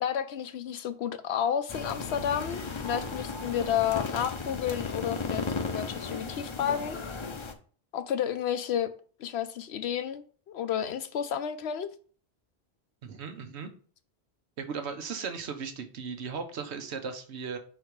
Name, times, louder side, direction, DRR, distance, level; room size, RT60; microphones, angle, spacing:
voice 1, 0.0-7.0 7.9-8.9 9.2-11.9, left 9 dB, 75° left, 0.9 m, -31 dB
sound 1, 1.7-7.5, left 4 dB, 35° left, 0.6 m, -35 dB
voice 2, 13.0-13.7 14.6-17.6, right 5 dB, 85° right, 1.1 m, -37 dB
5.1 x 4.1 x 4.6 m
omnidirectional pair, 1.1 m